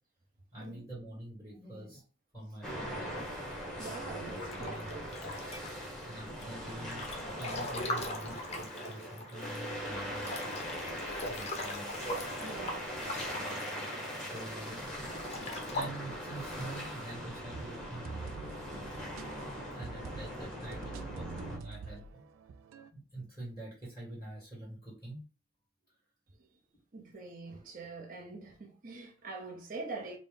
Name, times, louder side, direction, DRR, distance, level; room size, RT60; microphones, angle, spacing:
voice 1, 0.5-2.0 2.3-3.1 4.6-5.0 6.0-10.4 11.3-11.9 14.2-15.1 15.7-18.5 19.5-22.2 22.9-25.2, right 1 dB, 15° right, 1.4 m, -46 dB
sound 1, 2.6-21.6, equal, 5° left, 0.9 m, -41 dB
voice 2, 3.8-5.2 12.4-13.0 26.9-30.2, right 3 dB, 40° right, 0.7 m, -44 dB
Breathing / Bathtub (filling or washing) / Splash splatter, 4.3-5.9 6.4-9.6 9.9-10.0 10.2-14.4 15.0-15.9, left 1 dB, 30° left, 0.6 m, -40 dB
sound 2, 17.5-22.9, right 5 dB, 80° right, 0.3 m, -47 dB
4.1 x 2.1 x 3.6 m
head